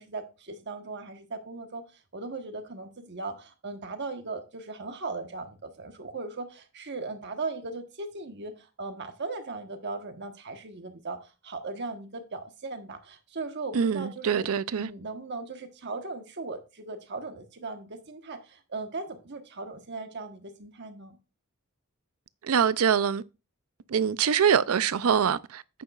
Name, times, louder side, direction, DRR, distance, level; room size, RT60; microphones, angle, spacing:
voice 1, 0.0-1.8 2.1-21.2, right 3 dB, 55° right, 1.2 m, -38 dB
voice 2, 13.7-14.9 22.5-23.2 23.9-25.8, right 7 dB, 80° right, 0.5 m, -24 dB
10.0 x 8.5 x 2.4 m
head